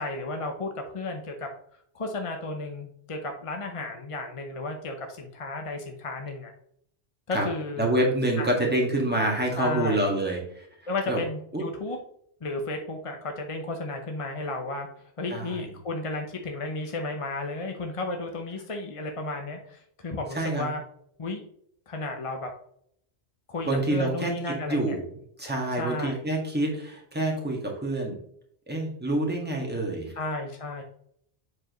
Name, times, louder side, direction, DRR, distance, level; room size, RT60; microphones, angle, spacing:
voice 1, 0.0-1.5 1.9-6.5 7.3-7.9 8.4-8.7 9.6-10.1 10.9-12.0 12.4-14.9 15.2-20.8 21.2-21.4 21.9-22.5 23.5-25.0 25.8-26.3 30.2-30.8, left 2 dB, 35° left, 3 dB, 0.8 m, -33 dB
voice 2, 7.8-10.7 11.1-11.2 11.5-11.6 15.3-15.6 20.3-20.7 23.6-25.0 25.4-28.2 28.7-30.1, right 1 dB, 10° right, -1 dB, 1.7 m, -27 dB
7.5 x 4.8 x 3.1 m, 0.67 s
omnidirectional pair, 1.1 m